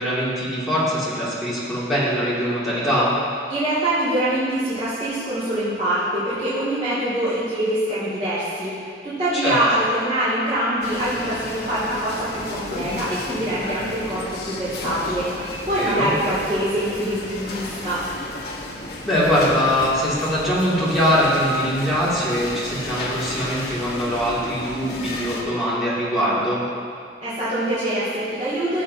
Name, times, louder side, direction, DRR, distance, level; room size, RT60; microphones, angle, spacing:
voice 1, 0.0-3.1 9.3-9.6 15.8-16.1 19.0-26.6, equal, ahead, -11 dB, 2.6 m, -22 dB
voice 2, 3.5-18.0 27.2-28.8, right 1 dB, 35° right, -13 dB, 2.5 m, -24 dB
sound 1, 10.8-25.4, left 2 dB, 60° left, 1.0 m, -33 dB
14.0 x 7.6 x 2.8 m, 2.3 s
head